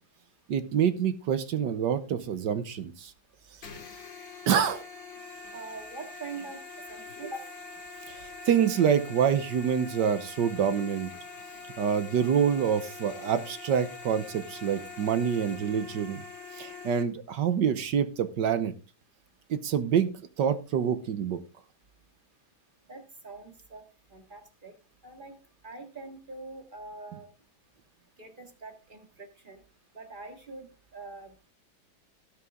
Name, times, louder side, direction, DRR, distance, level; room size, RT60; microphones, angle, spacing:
voice 1, 0.5-3.1 4.5-4.8 8.1-11.1 11.8-16.2 16.5-18.7 19.5-20.1 20.4-21.4, right 8 dB, 65° right, 12 dB, 1.5 m, -26 dB
sound 1, 3.6-17.0, left 4 dB, 65° left, 2.4 m, -44 dB
voice 2, 5.5-6.6 6.9-7.5 22.9-23.9 24.1-24.7 25.0-25.4 25.6-27.3 28.2-29.6 29.9-31.3, right 3 dB, 25° right, 5 dB, 2.1 m, -43 dB
17.5 x 7.0 x 3.7 m, 0.32 s
omnidirectional pair, 2.2 m